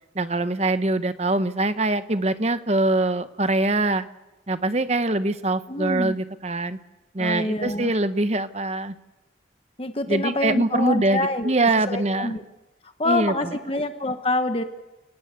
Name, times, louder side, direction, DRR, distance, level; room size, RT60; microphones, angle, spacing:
voice 1, 0.1-4.1 4.5-6.8 7.1-8.9 10.1-12.4 13.1-13.3, right 2 dB, 35° right, 11 dB, 1.0 m, -23 dB
voice 2, 5.7-6.2 7.2-7.9 9.8-11.5 11.9-12.4 13.0-14.6, left 2 dB, 30° left, 7 dB, 1.1 m, -26 dB
29.5 x 18.5 x 8.3 m, 1.1 s
head